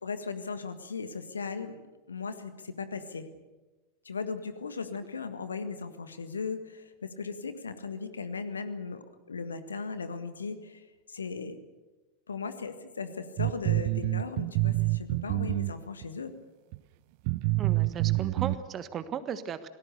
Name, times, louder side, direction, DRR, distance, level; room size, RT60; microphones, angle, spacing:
voice 1, 0.0-1.8 2.1-3.3 4.0-11.6 12.3-16.3, left 5 dB, 75° left, 10 dB, 1.7 m, -37 dB
sound 1, 13.4-16.0 16.7-16.8 17.3-18.6, right 20 dB, 50° right, 0.8 m, -27 dB
voice 2, 17.6-19.7, right 8 dB, 30° right, 13 dB, 1.4 m, -36 dB
27.5 x 18.5 x 6.8 m, 1.2 s
figure-of-eight pair, 85°, 0 cm